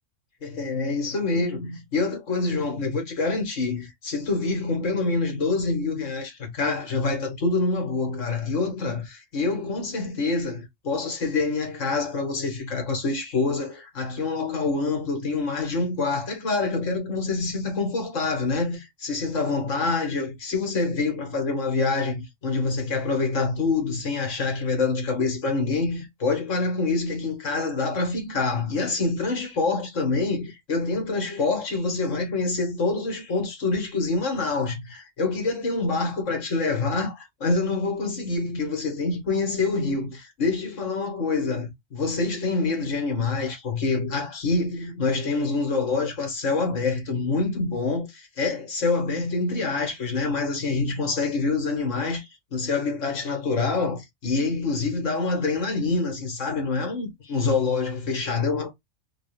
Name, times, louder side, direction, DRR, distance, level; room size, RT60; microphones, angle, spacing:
voice 1, 0.4-58.7, left 3 dB, 90° left, 1.7 m, -26 dB
3.7 x 2.3 x 3.3 m
omnidirectional pair, 1.3 m